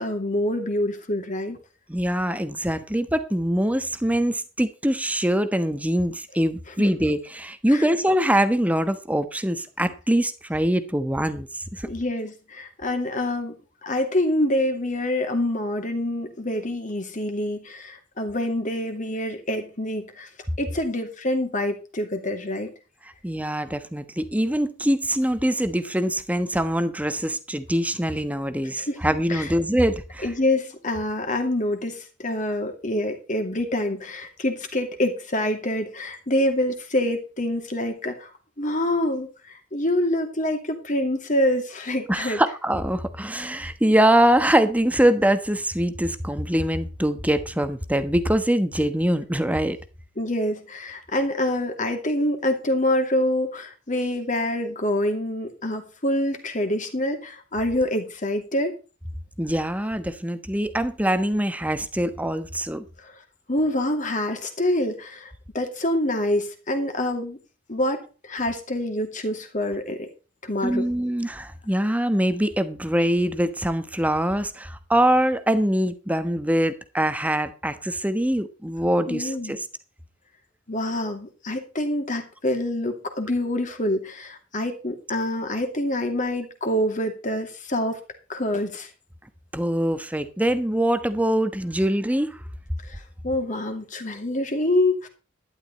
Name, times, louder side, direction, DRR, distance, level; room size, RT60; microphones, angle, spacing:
voice 1, 0.0-1.6 6.7-6.9 7.7-7.9 11.8-13.6 13.8-20.3 20.6-22.7 28.8-29.0 29.3-29.6 30.2-38.3 38.6-42.6 50.2-58.7 63.0-63.1 63.5-67.4 67.7-70.1 70.4-70.9 79.1-79.6 80.7-88.0 88.3-88.9 92.8-95.1, left 1 dB, 40° left, 2.6 m, -26 dB
voice 2, 1.9-11.9 23.2-30.3 42.1-49.8 59.4-62.8 70.6-79.6 89.5-92.4, right 1 dB, 10° right, 1.1 m, -23 dB
12.0 x 11.5 x 4.1 m
head